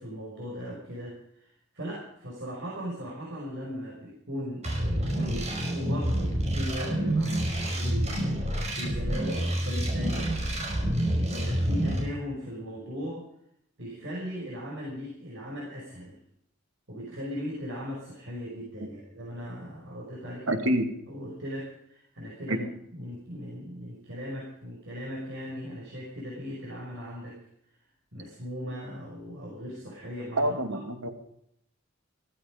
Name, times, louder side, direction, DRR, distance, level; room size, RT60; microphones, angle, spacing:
voice 1, 0.0-10.3 10.9-13.3 13.8-16.2 16.9-20.6 21.1-27.4 28.1-30.6, equal, 65° right, -4 dB, 5.9 m, -38 dB
sound 1, 4.6-12.0, right 1 dB, 35° right, 5.4 m, -28 dB
voice 2, 20.5-20.9 22.5-22.6 30.4-31.1, right 1 dB, 85° right, 6 dB, 2.5 m, -26 dB
16.0 x 15.5 x 5.2 m, 0.72 s
head